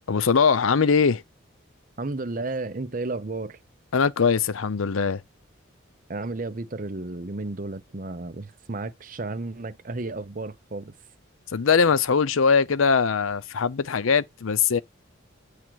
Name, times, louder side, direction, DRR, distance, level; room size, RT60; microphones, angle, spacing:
voice 1, 0.1-1.2 3.9-5.2 11.5-14.8, left 5 dB, 85° left, 0.6 m, -21 dB
voice 2, 2.0-3.6 6.1-10.9, right 2 dB, 40° right, 0.7 m, -33 dB
8.8 x 3.3 x 6.2 m
head